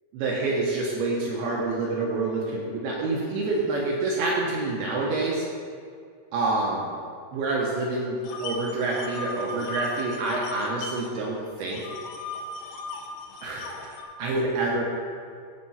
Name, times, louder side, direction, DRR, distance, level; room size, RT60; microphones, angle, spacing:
voice 1, 0.1-5.5 6.3-6.9 7.3-11.9 13.4-14.8, right 2 dB, 75° right, -3 dB, 2.3 m, -27 dB
sound 1, 8.2-11.1 11.4-14.0, left 2 dB, 75° left, 2.7 m, -36 dB
12.5 x 4.4 x 5.6 m, 2.2 s
omnidirectional pair, 5.6 m